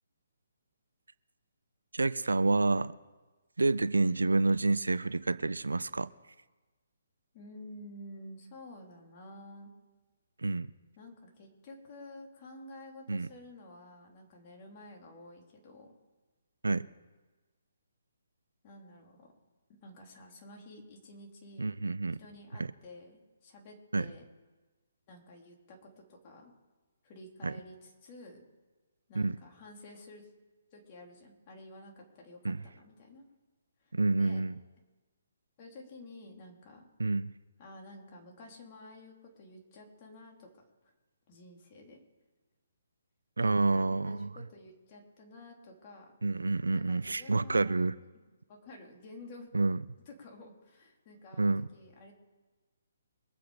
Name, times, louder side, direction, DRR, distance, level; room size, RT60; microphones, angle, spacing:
voice 1, 1.9-2.9 3.6-6.1 10.4-10.7 13.1-13.3 16.6-16.9 21.6-22.2 22.6-22.7 23.9-24.1 27.4-27.5 29.2-29.4 32.4-32.6 33.9-34.6 37.0-37.3 43.4-44.3 46.2-47.9 49.5-49.8 51.4-51.7, right 3 dB, 85° right, 0.5 m, -28 dB
voice 2, 7.3-9.7 11.0-15.9 18.6-19.3 19.7-21.8 22.2-24.2 25.1-26.5 27.0-28.4 29.1-30.3 30.7-33.3 33.8-34.4 35.6-36.9 37.6-40.5 41.3-42.0 43.4-46.1 46.7-48.1 48.5-49.5 50.1-52.1, left 1 dB, 35° left, 3.6 m, -51 dB
24.0 x 8.0 x 5.1 m
figure-of-eight pair, 140°, 0 cm